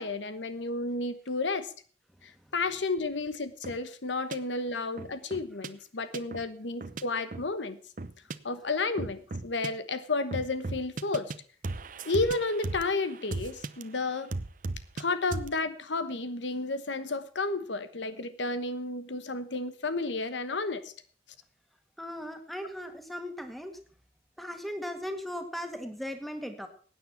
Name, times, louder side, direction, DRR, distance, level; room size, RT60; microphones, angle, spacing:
voice 1, 0.0-1.7 2.2-7.8 8.4-11.3 12.1-14.3 14.9-20.9, left 3 dB, 85° left, 12 dB, 1.2 m, -32 dB
sound 1, 3.6-3.8 4.3-4.4 5.0-5.7 6.1-6.4 6.8-7.0 7.3-7.5 8.0-8.4 9.0-9.7 10.3-11.4 11.6-13.8 14.3-15.0 15.3-15.6, right 2 dB, 45° right, 0.8 m, -36 dB
voice 2, 22.0-23.8 24.4-26.7, equal, ahead, 7 dB, 1.8 m, -37 dB
16.5 x 9.4 x 5.8 m, 0.44 s
head